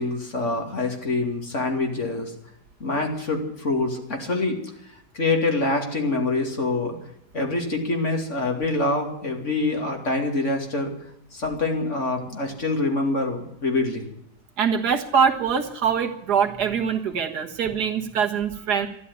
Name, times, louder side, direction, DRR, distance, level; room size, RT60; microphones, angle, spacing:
voice 1, 0.0-2.3 2.8-4.6 5.1-7.0 7.3-10.9 11.3-14.0, left 2 dB, 45° left, 2 dB, 2.9 m, -25 dB
voice 2, 14.6-18.9, right 7 dB, 70° right, 4 dB, 1.9 m, -23 dB
13.5 x 11.0 x 9.6 m, 0.75 s
omnidirectional pair, 1.8 m